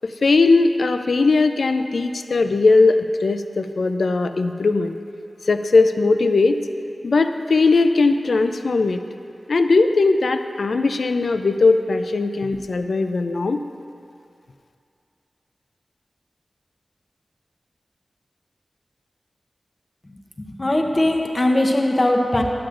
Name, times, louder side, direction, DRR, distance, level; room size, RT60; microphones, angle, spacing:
voice 1, 0.0-4.9 5.5-6.6 7.0-9.0 9.5-13.6, left 3 dB, 80° left, 8 dB, 0.3 m, -19 dB
voice 2, 20.5-22.4, left 1 dB, 30° left, 1 dB, 0.7 m, -20 dB
11.5 x 7.6 x 2.5 m, 2.5 s
wide cardioid pair, 90°, 0 cm